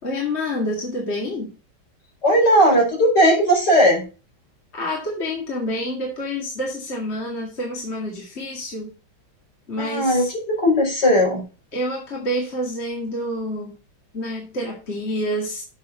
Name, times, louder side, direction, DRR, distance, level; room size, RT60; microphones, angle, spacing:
voice 1, 0.0-1.5 4.7-8.9 9.7-10.3 11.7-13.8 14.1-15.6, left 1 dB, 35° left, -2 dB, 2.3 m, -28 dB
voice 2, 2.2-4.1 9.8-11.4, equal, 55° left, -1 dB, 4.9 m, -17 dB
7.5 x 6.3 x 5.8 m, 0.34 s
omnidirectional pair, 2.1 m